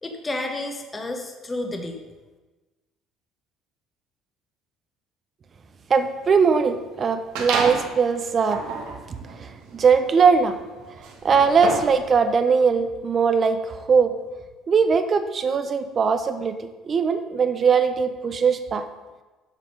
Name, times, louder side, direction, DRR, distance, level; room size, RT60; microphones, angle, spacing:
voice 1, 0.0-2.0, left 2 dB, 20° left, 4 dB, 1.0 m, -31 dB
voice 2, 5.9-8.6 9.1-10.6 11.2-14.1 14.7-18.9, right 5 dB, 40° right, 9 dB, 0.7 m, -20 dB
sound 1, 7.3-7.9 8.4-12.0, right 4 dB, 80° right, 1.5 m, -30 dB
7.3 x 5.9 x 5.4 m, 1.2 s
supercardioid pair, 100°, 0 cm